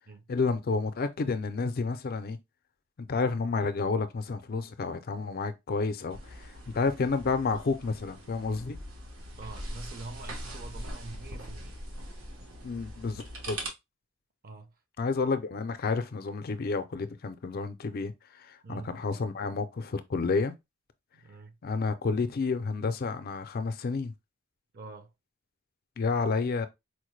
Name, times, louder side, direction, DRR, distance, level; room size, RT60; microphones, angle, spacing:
voice 1, 0.3-2.4 3.0-8.8 12.6-13.6 15.0-20.5 21.6-24.1 26.0-26.7, left 4 dB, 45° left, 0.4 m, -30 dB
sound 1, 6.1-13.7, right 1 dB, 80° right, 1.1 m, -42 dB
voice 2, 9.4-11.8 14.4-14.7 18.6-18.9 21.1-21.6 24.7-25.1, right 3 dB, 45° right, 0.7 m, -45 dB
4.5 x 2.1 x 3.1 m
head